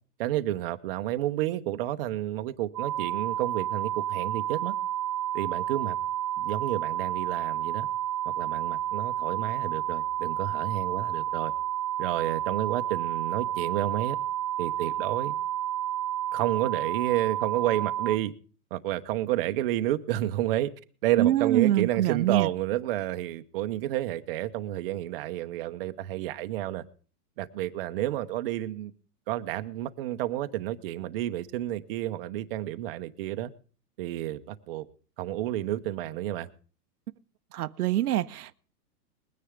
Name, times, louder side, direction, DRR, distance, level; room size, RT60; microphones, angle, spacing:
voice 1, 0.2-4.7 5.3-6.0 6.4-7.9 8.3-11.5 12.0-14.2 14.6-15.4 16.3-18.3 18.7-20.7 21.0-26.8 27.4-28.9 29.3-33.5 34.0-34.9 35.2-36.5, right 14 dB, 35° right, 0.9 m, -30 dB
sound 1, 2.7-18.2, right 12 dB, 20° right, 0.5 m, -30 dB
voice 2, 21.2-22.5 37.5-38.5, right 13 dB, 65° right, 0.8 m, -25 dB
21.0 x 10.0 x 3.6 m
hypercardioid pair, 155°, 48 cm